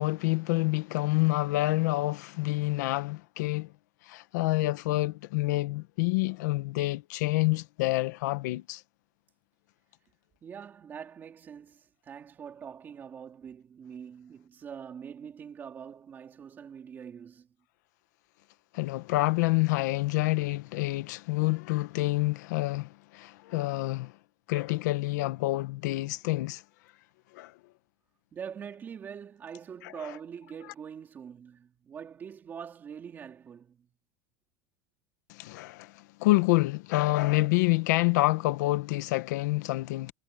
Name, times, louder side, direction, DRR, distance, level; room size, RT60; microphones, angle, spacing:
voice 1, 0.0-3.7 4.0-8.8 18.7-24.2 24.5-26.6 27.3-27.6 29.8-30.1 35.3-40.1, left 20 dB, 55° left, 1.0 m, -27 dB
voice 2, 10.4-17.5 28.3-33.9, right 7 dB, 15° right, 3.6 m, -44 dB
supercardioid pair, 180°, 11 cm